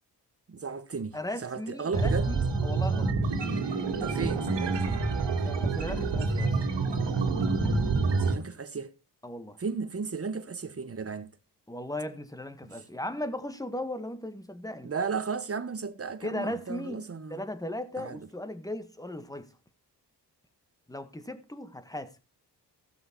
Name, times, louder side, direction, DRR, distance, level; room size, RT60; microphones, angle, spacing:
voice 1, 0.5-2.3 4.0-5.0 8.2-8.9 9.6-11.3 12.6-12.8 14.8-17.4 18.0-18.2, right 5 dB, 30° right, 1.3 m, -35 dB
voice 2, 1.1-3.1 5.4-6.5 9.2-9.6 11.7-14.9 16.2-17.0 17.3-19.5 20.9-22.1, left 1 dB, 10° left, 1.6 m, -37 dB
sound 1, 1.9-8.3, right 3 dB, 75° right, 2.2 m, -27 dB
15.5 x 6.4 x 4.6 m
cardioid pair, 65°, 43 cm